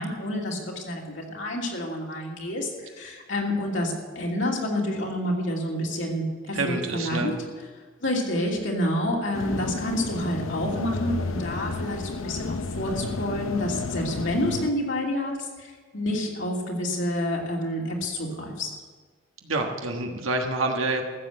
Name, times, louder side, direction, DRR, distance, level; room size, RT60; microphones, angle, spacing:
voice 1, 0.0-7.3 8.0-18.7, left 1 dB, 65° left, -1 dB, 2.8 m, -28 dB
voice 2, 6.5-7.4 19.4-21.0, right 2 dB, 80° right, 2 dB, 1.4 m, -27 dB
sound 1, 9.3-14.7, left 3 dB, 85° left, 0.7 m, -31 dB
14.0 x 7.7 x 7.9 m, 1.5 s
head